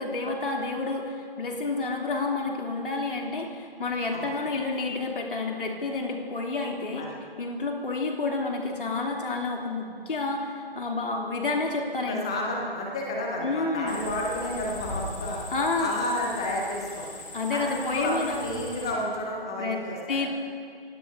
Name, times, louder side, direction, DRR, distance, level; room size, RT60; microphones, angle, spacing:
voice 1, 0.0-7.1 7.4-12.3 13.4-13.9 15.5-15.9 17.3-18.4 19.6-19.8 20.1-20.3, left 3 dB, 60° left, 0 dB, 3.0 m, -29 dB
voice 2, 12.1-15.4 15.8-17.0 17.5-20.2, left 1 dB, 5° left, -1 dB, 0.5 m, -31 dB
sound 1, 13.9-18.9, left 2 dB, 40° left, 3.3 m, -40 dB
29.5 x 17.0 x 2.7 m, 2.4 s
figure-of-eight pair, 150°, 30 cm